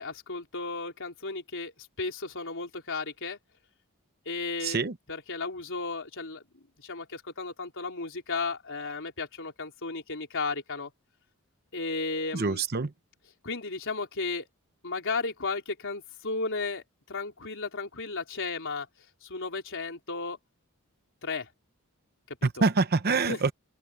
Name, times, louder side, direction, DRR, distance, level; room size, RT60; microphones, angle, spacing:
voice 1, 0.0-3.4 4.2-4.8 5.1-6.4 6.8-10.9 11.7-12.6 13.4-14.5 14.8-18.9 19.2-20.4 21.2-21.5 22.3-22.7 23.2-23.4, left 3 dB, 60° left, 4.5 m, -34 dB
voice 2, 4.6-4.9 12.3-12.9 22.4-23.5, right 4 dB, 45° right, 0.9 m, -25 dB
head